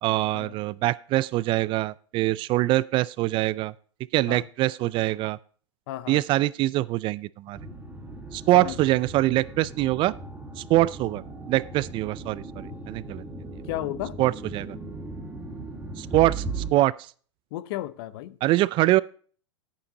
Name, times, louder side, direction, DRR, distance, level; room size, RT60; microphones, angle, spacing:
voice 1, 0.0-3.7 4.1-5.4 6.1-7.6 8.3-10.1 10.6-11.2 11.5-13.2 14.2-14.8 16.0-16.9 18.4-19.0, right 17 dB, 35° right, 0.4 m, -24 dB
voice 2, 5.9-6.2 8.5-8.8 13.7-14.2 17.5-18.4, left 16 dB, 55° left, 0.8 m, -33 dB
sound 1, 7.5-16.7, right 3 dB, 10° right, 2.4 m, -38 dB
9.8 x 8.6 x 3.7 m
hypercardioid pair, 110°, 15 cm